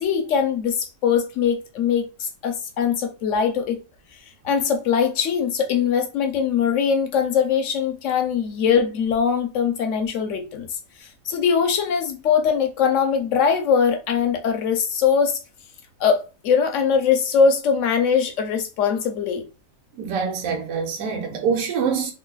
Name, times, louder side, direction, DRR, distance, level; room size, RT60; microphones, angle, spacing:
voice 1, 0.0-3.8 4.4-10.7 11.0-15.4 16.0-19.4, left 6 dB, 70° left, 1.0 m, -21 dB
voice 2, 20.0-22.1, right 6 dB, 80° right, 1.1 m, -25 dB
2.8 x 2.3 x 3.8 m
omnidirectional pair, 1.4 m